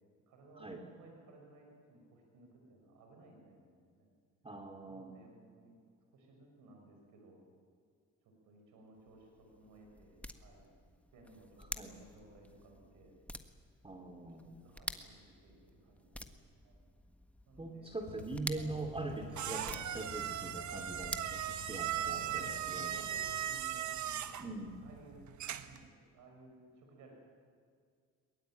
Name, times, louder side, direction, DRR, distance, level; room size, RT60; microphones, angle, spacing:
voice 1, 0.3-4.1 4.9-5.8 6.1-7.4 8.2-10.7 11.1-13.2 14.3-16.8 17.5-18.0 18.6-18.7 19.3-19.4 21.9-24.4 24.8-25.2 25.5-27.1, right 2 dB, 90° right, 2 dB, 6.6 m, -58 dB
voice 2, 4.4-5.2 11.6-12.0 13.8-14.6 17.6-23.0 24.4-24.8, right 2 dB, 20° right, 3 dB, 2.6 m, -43 dB
sound 1, 9.0-22.2, left 1 dB, 5° left, 1.5 m, -49 dB
sound 2, 18.0-23.4, left 6 dB, 80° left, 3.5 m, -52 dB
sound 3, 18.6-25.9, right 10 dB, 70° right, 1.4 m, -39 dB
22.0 x 21.5 x 9.3 m, 2.1 s
cardioid pair, 90°, 30 cm